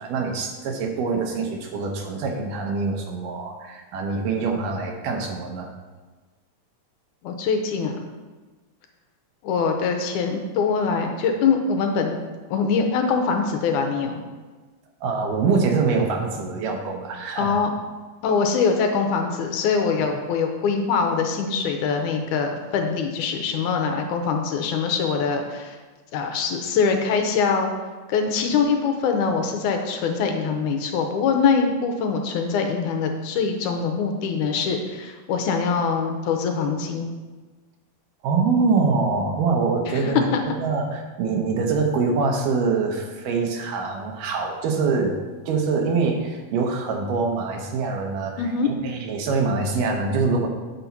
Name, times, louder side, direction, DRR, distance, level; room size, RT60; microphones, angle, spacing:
voice 1, 0.0-5.7 15.0-17.6 20.0-20.1 38.2-40.3 40.6-45.2 45.5-50.5, right 4 dB, 85° right, 2 dB, 2.7 m, -24 dB
voice 2, 7.2-8.1 9.4-12.2 12.5-14.2 17.4-17.7 18.2-25.8 26.1-27.7 28.1-37.1 39.9-40.4 48.4-48.7, left 5 dB, 75° left, 4 dB, 2.1 m, -23 dB
8.8 x 4.1 x 5.8 m, 1.3 s
omnidirectional pair, 3.7 m